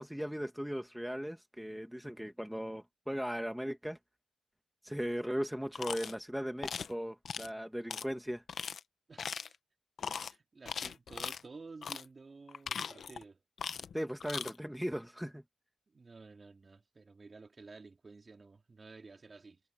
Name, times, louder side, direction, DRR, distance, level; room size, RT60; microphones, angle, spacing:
voice 1, 0.0-4.0 4.8-8.4 13.9-15.4, equal, ahead, 1.5 m, -38 dB
sound 1, 5.8-6.1 6.6-6.9 7.3-7.5 7.9-8.0 8.5-8.8 9.2-9.6 10.0-10.3 10.7-11.4 11.8-12.1 12.5-13.2 13.6-13.9 14.2-14.5, left 7 dB, 70° left, 0.9 m, -39 dB
voice 2, 9.1-9.5 10.0-13.4 15.9-19.6, right 4 dB, 40° right, 3.5 m, -53 dB
cardioid pair, 75°, 0 cm